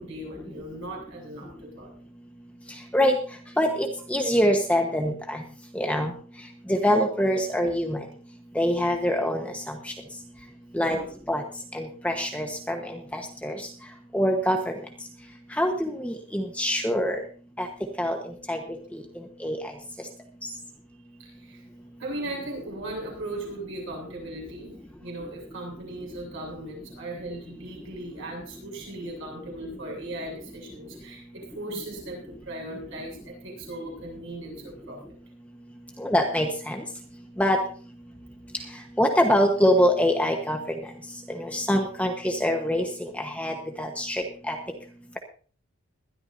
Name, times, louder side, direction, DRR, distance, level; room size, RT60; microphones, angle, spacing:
voice 1, 0.0-1.9 10.8-11.1 21.2-21.7 22.0-35.0, right 1 dB, 55° right, 0 dB, 7.4 m, -38 dB
voice 2, 3.6-5.4 5.7-6.1 6.7-8.0 8.5-9.9 10.7-11.4 11.7-12.8 13.1-13.6 14.1-14.7 15.6-17.2 17.6-17.7 18.0-18.2 18.5-18.6 18.9-19.0 19.4-19.6 36.0-36.8 37.4-37.6 39.0-40.6 41.3-44.6, equal, 5° left, 3 dB, 1.2 m, -24 dB
21.0 x 12.5 x 2.7 m, 0.41 s
head